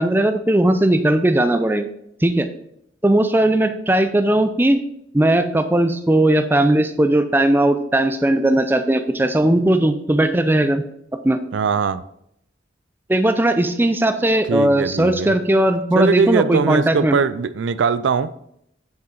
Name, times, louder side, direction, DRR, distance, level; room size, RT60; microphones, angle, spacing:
voice 1, 0.0-1.9 2.2-2.5 3.0-4.8 5.1-10.8 11.2-11.4 13.1-17.2, right 1 dB, 10° right, 0.4 m, -18 dB
voice 2, 11.5-12.0 14.5-15.3 16.0-18.3, right 5 dB, 85° right, 0.4 m, -21 dB
7.3 x 6.1 x 3.9 m
head